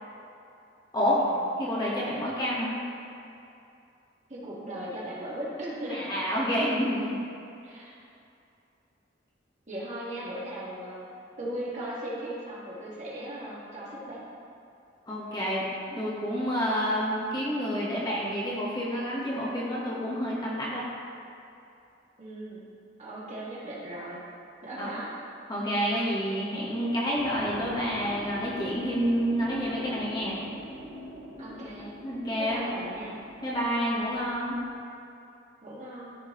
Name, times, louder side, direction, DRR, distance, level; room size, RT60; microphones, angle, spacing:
voice 1, 1.0-1.5 4.3-6.0 7.6-7.9 9.7-14.2 22.2-22.6 23.0-24.2 24.6-25.1 31.4-31.9 32.4-33.2 35.6-36.1, right 1 dB, 35° right, -8 dB, 2.0 m, -38 dB
voice 2, 1.6-2.7 5.9-7.2 15.1-20.8 24.7-24.9 25.5-30.4 32.0-32.6 33.4-34.6, equal, 20° left, -7 dB, 1.5 m, -29 dB
sound 1, 27.1-34.7, left 1 dB, 15° right, 1.8 m, -43 dB
14.0 x 5.0 x 3.2 m, 2.6 s
head